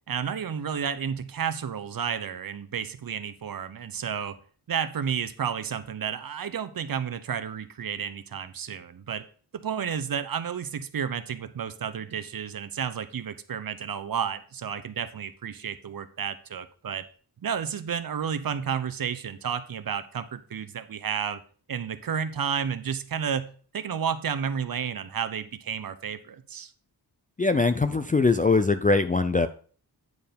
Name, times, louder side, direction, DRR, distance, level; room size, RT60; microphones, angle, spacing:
voice 1, 0.1-4.4 4.7-9.2 9.5-17.0 17.4-21.4 21.7-26.7, right 7 dB, 55° right, 12 dB, 0.8 m, -31 dB
voice 2, 27.4-29.5, left 3 dB, 20° left, 10 dB, 0.4 m, -22 dB
9.5 x 4.5 x 5.2 m, 0.43 s
wide cardioid pair, 160°, 40 cm